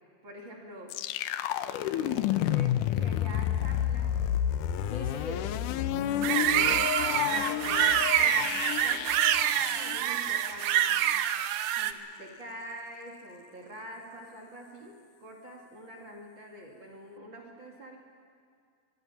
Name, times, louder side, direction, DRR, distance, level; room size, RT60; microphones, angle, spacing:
voice 1, 0.2-1.0 1.8-4.2 6.3-6.5 7.2-11.2 11.8-18.0, right 1 dB, 35° right, -1 dB, 2.6 m, -45 dB
sound 1, 0.9-10.7, left 11 dB, 75° left, 2.0 m, -30 dB
voice 2, 4.9-6.6, left 3 dB, 45° left, 1 dB, 1.9 m, -41 dB
sound 2, 6.2-11.9, right 11 dB, 75° right, 2.0 m, -26 dB
24.0 x 22.0 x 5.8 m, 2.2 s
omnidirectional pair, 4.0 m